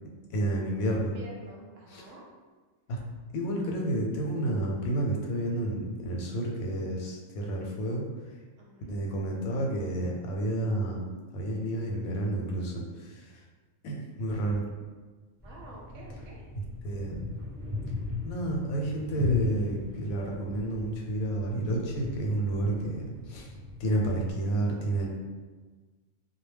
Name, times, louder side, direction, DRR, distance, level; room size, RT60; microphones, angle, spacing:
voice 1, 0.3-1.1 1.9-2.0 2.9-3.0 3.3-8.0 8.9-13.4 13.8-14.6 16.8-17.2 18.2-23.5 23.8-25.1, right 1 dB, 90° left, -1 dB, 1.0 m, -30 dB
voice 2, 1.1-2.2 8.6-9.0 15.4-16.4, right 2 dB, 70° right, -3 dB, 0.9 m, -48 dB
sound 1, 15.4-24.3, left 3 dB, 5° left, 0.7 m, -37 dB
2.2 x 2.1 x 3.2 m, 1.4 s
omnidirectional pair, 1.4 m